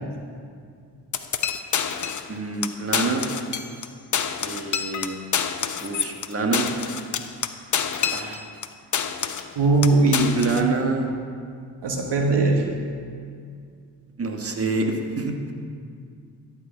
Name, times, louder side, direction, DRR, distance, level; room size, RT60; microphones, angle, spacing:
sound 1, 1.1-2.3 2.6-2.7 2.9-3.9 4.1-8.7 8.9-9.5 9.8-10.7, left 7 dB, 40° left, 0.8 m, -27 dB
voice 1, 2.3-3.3 4.4-5.2 5.8-6.7 8.1-8.4 10.3-11.1 12.4-12.8 14.2-15.5, right 3 dB, 30° right, 2 dB, 1.5 m, -27 dB
voice 2, 9.6-10.4 11.8-12.6, right 3 dB, 60° right, 2 dB, 1.4 m, -19 dB
12.5 x 5.0 x 7.0 m, 2.3 s
supercardioid pair, 45°, 46 cm